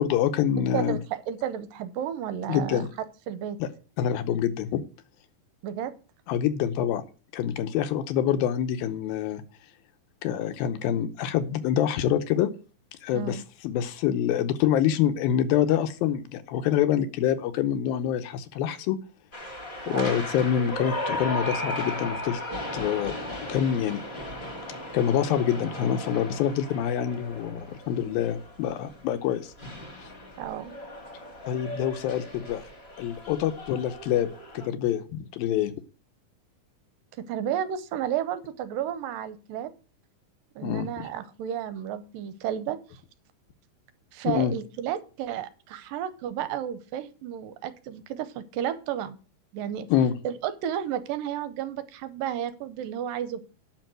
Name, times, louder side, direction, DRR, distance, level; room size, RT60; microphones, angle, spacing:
voice 1, 0.0-1.0 2.5-2.9 3.6-3.7 4.0-4.8 6.3-7.0 7.3-9.4 10.2-12.5 13.0-19.0 19.9-22.4 22.7-24.2 24.9-29.5 31.5-32.6 33.0-35.7 40.6-41.0 44.3-44.5 49.9-50.1, left 10 dB, 75° left, 9 dB, 2.6 m, -26 dB
voice 2, 0.6-2.9 3.3-3.6 5.6-5.9 13.1-13.4 19.9-20.3 20.6-20.7 30.4-30.7 37.2-39.7 40.6-43.0 44.1-49.2 49.5-49.9 50.2-53.4, right 10 dB, 75° right, 12 dB, 2.2 m, -32 dB
sound 1, 19.3-34.7, left 1 dB, 25° left, 1.4 m, -36 dB
9.1 x 6.3 x 7.7 m, 0.37 s
omnidirectional pair, 4.4 m